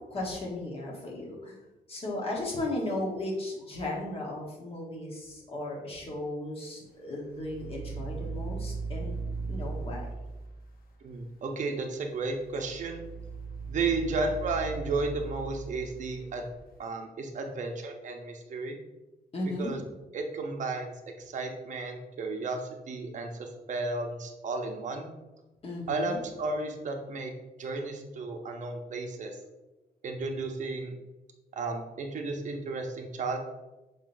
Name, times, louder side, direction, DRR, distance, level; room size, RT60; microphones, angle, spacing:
voice 1, 0.1-1.6 1.9-9.2 9.5-10.1 19.3-19.7 25.6-26.2, left 1 dB, 35° left, -2 dB, 1.1 m, -35 dB
sound 1, 7.2-10.9 12.2-16.6, right 4 dB, 60° left, 0.6 m, -38 dB
voice 2, 11.0-13.0 13.7-16.5 16.8-18.8 19.6-19.8 20.1-25.1 25.9-27.3 27.6-29.4 30.0-30.9 31.5-33.4, right 3 dB, 50° right, 3 dB, 0.7 m, -33 dB
5.7 x 3.6 x 2.5 m, 1.0 s
wide cardioid pair, 155°, 17 cm